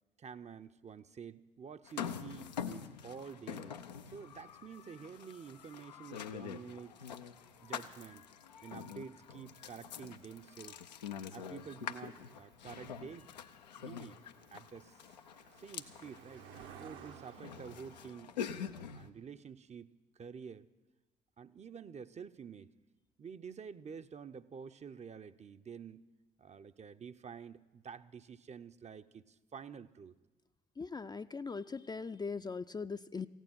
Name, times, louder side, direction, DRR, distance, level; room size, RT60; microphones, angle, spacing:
voice 1, 0.2-3.8 4.1-7.0 7.6-8.3 8.6-10.8 11.3-13.3 13.8-14.2 14.5-14.9 15.6-16.5 16.8-18.4 18.9-20.7 21.4-22.7 23.2-26.0 26.4-30.1, right 6 dB, 35° right, 11 dB, 0.7 m, -49 dB
sound 1, 1.9-19.1, left 8 dB, 85° left, 0.5 m, -45 dB
Cricket, 9.2-18.1, right 8 dB, 65° right, 1.0 m, -57 dB
voice 2, 30.8-33.3, left 4 dB, 20° left, 10 dB, 0.5 m, -40 dB
15.5 x 9.1 x 9.2 m, 1.2 s
figure-of-eight pair, 50°, 21 cm